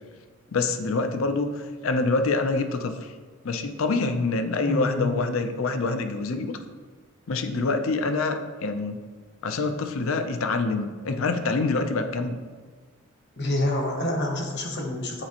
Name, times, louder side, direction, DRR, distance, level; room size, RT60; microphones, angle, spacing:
voice 1, 0.5-3.1 3.4-6.6 7.3-9.0 9.4-12.3, left 3 dB, 70° left, 8 dB, 0.5 m, -26 dB
voice 2, 4.7-5.1 13.4-15.2, left 1 dB, 50° left, 1 dB, 1.0 m, -27 dB
9.0 x 4.2 x 2.9 m, 1.5 s
head